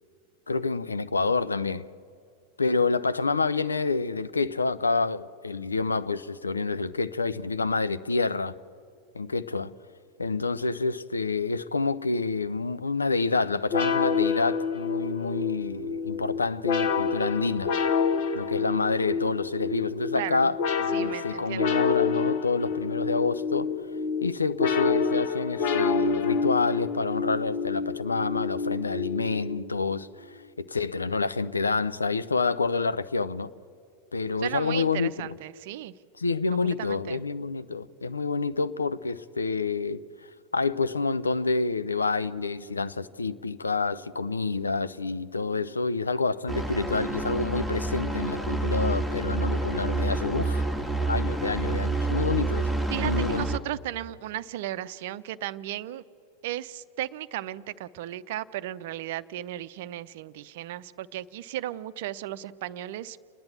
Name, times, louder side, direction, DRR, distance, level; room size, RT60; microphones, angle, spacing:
voice 1, 0.5-1.8 2.6-8.5 9.1-9.7 10.2-17.7 18.3-20.6 20.9-23.7 24.2-33.5 34.1-35.3 36.2-40.0 40.5-50.7 51.0-52.7 53.0-53.4, left 4 dB, 75° left, 0.6 m, -28 dB
sound 1, 13.7-29.9, left 5 dB, 50° left, 1.2 m, -28 dB
voice 2, 20.1-20.5 20.9-21.7 34.4-35.9 36.5-37.2 52.9-56.0 56.4-63.2, right 13 dB, 50° right, 0.6 m, -35 dB
sound 2, 46.5-53.6, right 2 dB, 5° left, 1.5 m, -28 dB
29.5 x 10.5 x 8.4 m
figure-of-eight pair, 90°, 0 cm